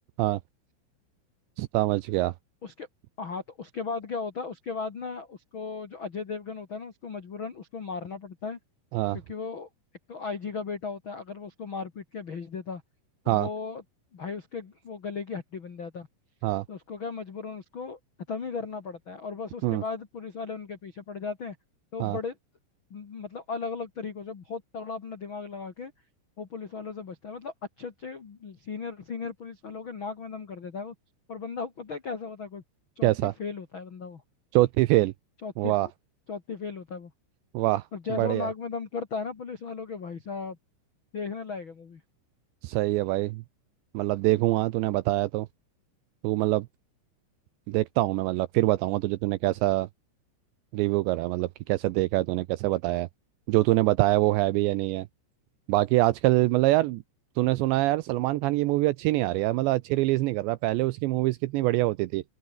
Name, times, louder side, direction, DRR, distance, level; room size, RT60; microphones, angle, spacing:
voice 1, 1.6-2.3 8.9-9.2 13.3-13.5 16.4-16.6 19.6-19.8 22.0-22.2 33.0-33.3 34.5-35.1 35.6-35.9 37.5-37.8 38.1-38.5 42.6-43.4 43.9-45.5 46.2-46.7 47.7-49.9 50.7-53.1 53.5-55.1 55.7-57.0 57.4-62.2, right 18 dB, 85° right, 2.6 m, -24 dB
voice 2, 3.2-8.6 9.1-9.7 10.1-12.8 13.2-13.8 14.1-16.1 16.7-18.0 18.3-21.5 21.9-22.3 22.9-25.9 26.4-30.9 31.3-32.6 32.9-34.2 35.4-35.7 36.3-37.1 37.9-40.6 41.1-42.0, left 5 dB, 90° left, 1.1 m, -36 dB
omnidirectional pair, 5.8 m